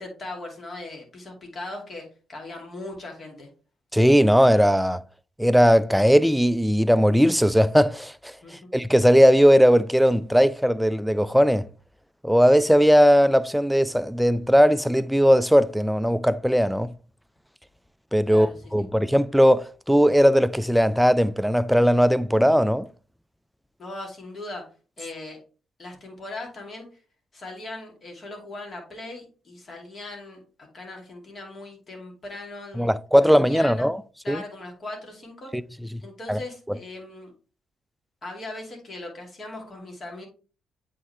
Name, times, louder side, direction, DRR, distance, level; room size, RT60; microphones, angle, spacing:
voice 1, 0.0-3.5 8.4-8.7 18.3-18.6 23.8-24.7 25.0-25.4 25.8-26.9 27.3-30.4 30.7-32.9 33.2-33.9 34.2-35.5 36.0-37.3 38.2-40.3, left 2 dB, 45° left, 2.5 m, -39 dB
voice 2, 3.9-5.0 5.4-11.7 12.2-16.9 18.1-22.9 32.8-34.0 34.3-34.4 35.5-35.6 36.3-36.4 36.7-36.8, equal, ahead, 0.4 m, -18 dB
8.4 x 3.8 x 3.2 m
hypercardioid pair, 40°, 0 cm